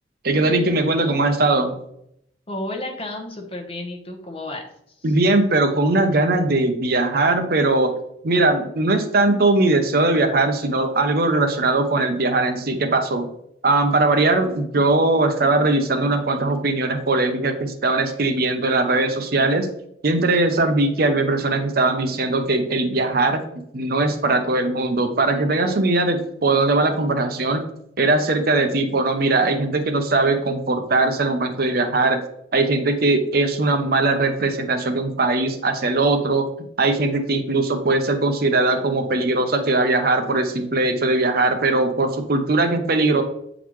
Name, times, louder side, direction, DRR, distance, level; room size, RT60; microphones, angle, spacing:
voice 1, 0.2-1.8 5.0-7.9 8.2-13.3 13.6-19.7 20.0-27.6 28.0-32.2 32.5-36.5 36.8-43.2, right 2 dB, 55° right, 7 dB, 0.7 m, -20 dB
voice 2, 2.5-4.6, left 1 dB, 30° left, 2 dB, 1.0 m, -31 dB
8.1 x 3.9 x 3.1 m, 0.75 s
head